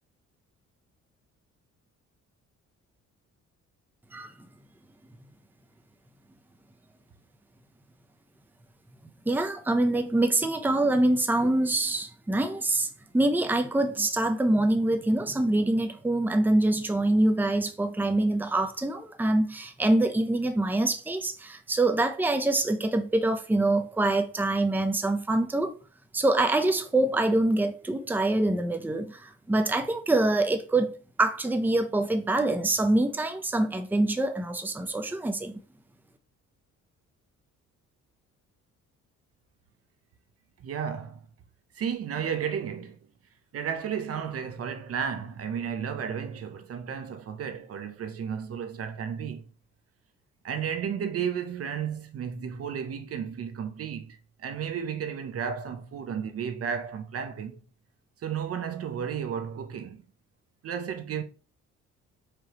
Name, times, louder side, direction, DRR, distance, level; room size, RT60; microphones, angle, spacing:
voice 1, 9.3-12.9 13.1-25.7 26.1-30.9 31.2-35.5, right 2 dB, 5° right, 0.6 m, -25 dB
voice 2, 40.6-41.2 41.7-43.0 43.5-49.4 50.4-57.6 58.2-60.0 60.6-61.2, right 7 dB, 50° right, 0.7 m, -33 dB
4.9 x 3.0 x 2.9 m
cardioid pair, 90°, 30 cm